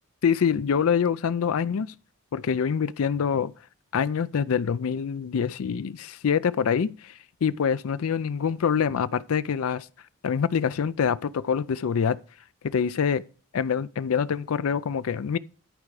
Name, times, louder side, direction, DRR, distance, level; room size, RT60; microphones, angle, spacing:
voice 1, 0.2-1.9 2.3-3.5 3.9-7.1 7.4-9.9 10.2-12.2 12.6-13.2 13.5-15.4, left 7 dB, 70° left, 0.4 m, -25 dB
11.0 x 4.7 x 4.8 m
head